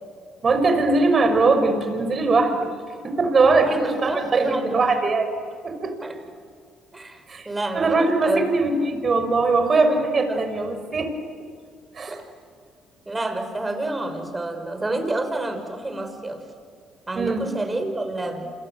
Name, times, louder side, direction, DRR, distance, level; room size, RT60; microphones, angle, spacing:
voice 1, 0.4-2.6 3.0-5.3 5.6-5.9 7.3-7.5 7.7-11.1 12.0-12.2 17.1-17.4, right 3 dB, 40° right, 7 dB, 5.9 m, -21 dB
voice 2, 3.5-4.8 6.0-6.2 6.9-8.9 10.3-10.4 12.1-12.2 13.1-16.4 17.1-18.5, right 2 dB, 20° right, 7 dB, 6.0 m, -29 dB
28.5 x 27.5 x 7.6 m, 2.1 s
hypercardioid pair, 60°, 0 cm